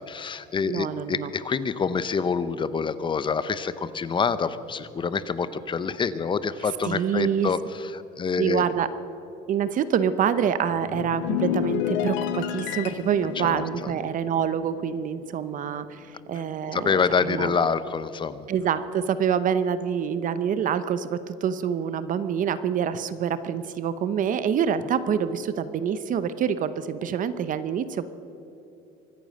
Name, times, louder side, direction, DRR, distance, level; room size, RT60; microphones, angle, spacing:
voice 1, 0.0-8.7 13.3-13.9 16.7-18.5, left 5 dB, 25° left, 14 dB, 0.7 m, -27 dB
voice 2, 0.6-1.3 6.8-7.5 8.4-8.9 9.5-17.5 18.5-28.1, right 8 dB, 45° right, 13 dB, 0.8 m, -26 dB
sound 1, 10.7-15.3 15.6-15.9, left 11 dB, 85° left, 1.0 m, -30 dB
24.5 x 9.2 x 6.5 m, 2.9 s
cardioid pair, 120°, 19 cm